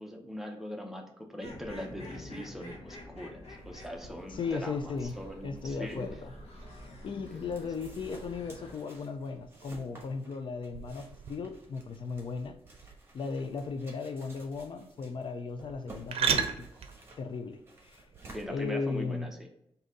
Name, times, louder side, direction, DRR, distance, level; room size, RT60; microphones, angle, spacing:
voice 1, 0.0-6.1 7.3-7.5 7.8-7.9 16.3-16.7 18.3-19.5, equal, 5° right, 0.7 m, -41 dB
sound 1, 1.4-8.7, left 1 dB, 80° left, 1.0 m, -47 dB
sound 2, 3.6-18.6, right 7 dB, 80° right, 0.5 m, -40 dB
voice 2, 4.3-5.1 5.4-6.3 6.8-12.6 13.1-16.5 17.2-18.1 18.5-19.3, left 4 dB, 55° left, 0.4 m, -36 dB
sound 3, 6.7-19.2, right 2 dB, 25° right, 1.2 m, -54 dB
3.9 x 2.7 x 3.5 m
wide cardioid pair, 115°, 10 cm